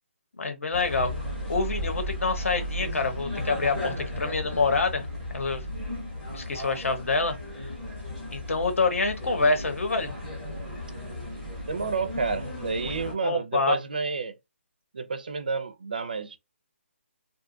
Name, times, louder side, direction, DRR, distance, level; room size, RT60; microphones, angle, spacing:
voice 1, 0.4-5.1 5.3-5.6 6.3-7.4 8.3-10.1 12.8-12.9 13.2-13.8, left 3 dB, 75° left, 1.0 m, -26 dB
sound 1, 0.7-13.1, left 1 dB, 5° left, 0.6 m, -35 dB
voice 2, 11.7-14.3 14.9-16.4, right 4 dB, 40° right, 0.4 m, -30 dB
2.6 x 2.2 x 2.5 m
hypercardioid pair, 175°, 7 cm